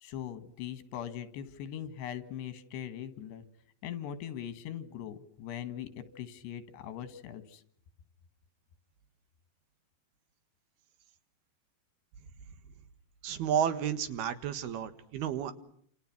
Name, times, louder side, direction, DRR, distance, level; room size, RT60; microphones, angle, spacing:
voice 1, 0.0-3.4 3.8-7.6, left 10 dB, 85° left, 12 dB, 3.8 m, -41 dB
voice 2, 13.2-15.5, right 9 dB, 70° right, 11 dB, 3.5 m, -31 dB
29.0 x 28.0 x 6.0 m, 0.63 s
omnidirectional pair, 4.8 m